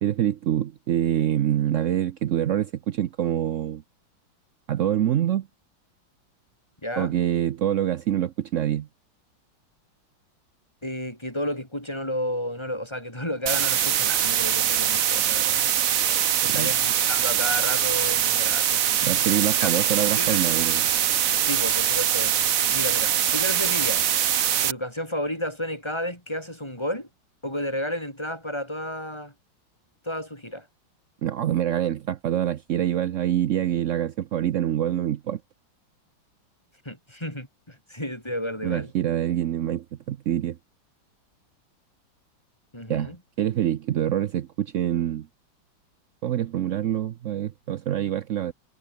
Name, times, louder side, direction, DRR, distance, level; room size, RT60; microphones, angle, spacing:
voice 1, 0.0-3.8 4.7-5.5 7.0-8.9 16.5-16.7 19.0-20.9 31.2-35.4 38.6-40.6 42.9-45.3 46.2-48.5, right 11 dB, 75° right, 0.7 m, -25 dB
voice 2, 6.8-7.1 10.8-15.7 16.4-18.8 19.6-19.7 20.1-20.4 21.4-22.5 22.7-24.1 24.6-27.1 27.4-29.3 30.0-30.7 36.9-38.9 42.7-43.2, left 1 dB, 10° left, 6.8 m, -32 dB
sound 1, 13.5-24.7, right 10 dB, 55° right, 1.1 m, -23 dB
omnidirectional pair, 2.2 m